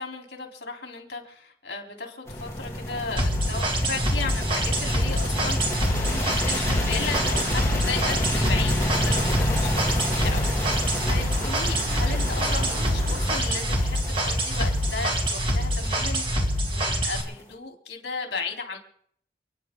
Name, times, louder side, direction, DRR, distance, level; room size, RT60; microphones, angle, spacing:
voice 1, 0.0-10.5 11.1-18.8, left 4 dB, 65° left, 2 dB, 3.5 m, -35 dB
sound 1, 2.3-17.4, left 1 dB, 15° left, 3.1 m, -30 dB
sound 2, 3.2-17.2, equal, 30° right, 2.2 m, -25 dB
sound 3, 5.5-13.4, equal, 55° right, 3.9 m, -37 dB
29.5 x 9.9 x 3.8 m, 0.63 s
head